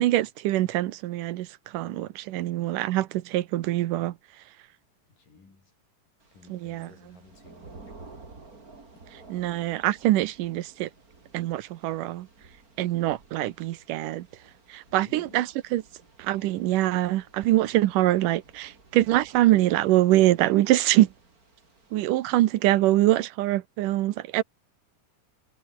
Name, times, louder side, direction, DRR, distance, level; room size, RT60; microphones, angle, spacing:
voice 1, 0.0-1.5 1.7-4.1 6.5-6.9 9.3-10.9 11.3-12.3 12.8-14.3 14.7-15.5 15.7-15.8 16.2-21.1 21.9-24.4, right 15 dB, 90° right, 2.5 m, -24 dB
voice 2, 5.1-5.7 6.3-8.3 14.9-15.6, left 4 dB, 85° left, 8.7 m, -55 dB
Thunder / Rain, 6.2-22.2, right 3 dB, 25° right, 3.8 m, -53 dB
omnidirectional pair, 3.7 m